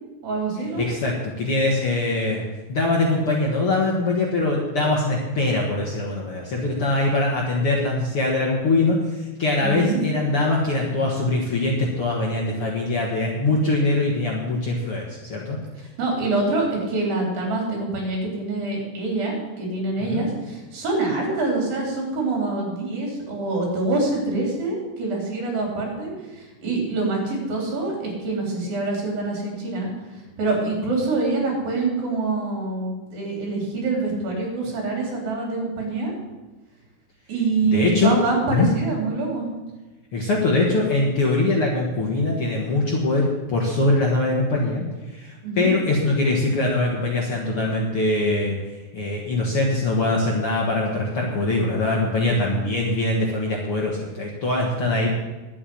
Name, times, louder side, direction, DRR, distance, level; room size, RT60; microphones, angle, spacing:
voice 1, 0.2-0.8 9.6-10.1 16.0-36.1 37.3-39.5 45.4-45.7 55.0-55.1, right 3 dB, 70° right, -1 dB, 5.3 m, -25 dB
voice 2, 0.8-2.4 2.7-15.6 20.1-20.2 37.7-38.1 38.5-38.7 40.1-48.5 48.9-55.1, left 2 dB, 50° left, -2 dB, 1.9 m, -22 dB
11.0 x 8.6 x 7.8 m, 1.2 s
omnidirectional pair, 4.3 m